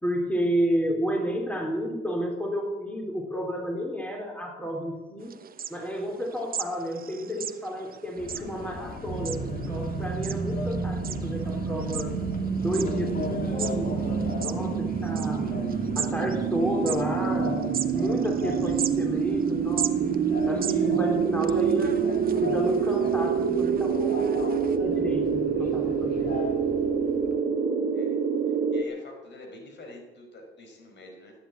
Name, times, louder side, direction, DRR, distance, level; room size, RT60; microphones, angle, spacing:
voice 1, 0.0-5.4 5.7-12.1 12.6-15.5 16.0-17.7 17.9-20.2 20.5-22.0 22.4-26.3, equal, 5° left, 1 dB, 3.8 m, -31 dB
sound 1, 5.2-24.8, right 8 dB, 50° right, 1.0 m, -39 dB
Subway metro underground, 8.2-27.4, left 3 dB, 45° left, 2.7 m, -39 dB
sound 2, 9.1-28.8, right 7 dB, 75° right, 1.8 m, -27 dB
voice 2, 28.4-31.3, left 2 dB, 65° left, 2 dB, 5.3 m, -46 dB
15.5 x 10.0 x 8.7 m, 1.2 s
cardioid pair, 90°, 20 cm